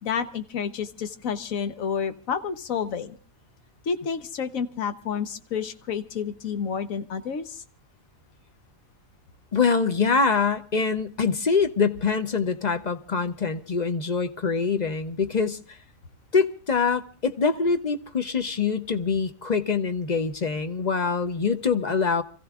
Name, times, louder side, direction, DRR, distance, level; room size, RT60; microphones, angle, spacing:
voice 1, 0.0-3.2 3.9-7.6, left 6 dB, 75° left, 1.4 m, -30 dB
voice 2, 9.5-15.8 16.3-22.2, left 5 dB, 40° left, 0.7 m, -24 dB
29.0 x 15.5 x 2.4 m
omnidirectional pair, 1.4 m